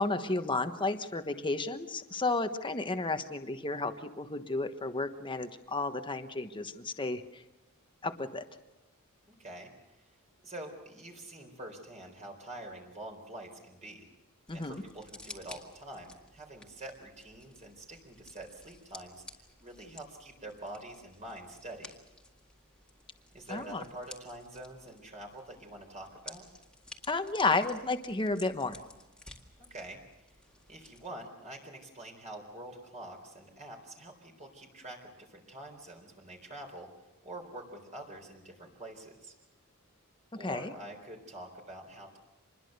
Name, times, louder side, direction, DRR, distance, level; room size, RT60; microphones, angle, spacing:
voice 1, 0.0-7.4 8.0-8.4 14.5-14.8 23.5-23.8 27.1-28.8 40.4-40.7, left 3 dB, 20° left, 8 dB, 1.2 m, -32 dB
voice 2, 9.3-9.7 10.4-14.1 14.5-19.2 19.6-21.9 23.3-26.5 29.7-30.0 30.7-36.9 37.2-39.4 40.4-42.2, right 1 dB, 35° right, 2 dB, 4.0 m, -46 dB
sound 1, 14.5-31.1, left 2 dB, 5° left, 1.9 m, -54 dB
26.5 x 21.0 x 6.7 m, 1.0 s
head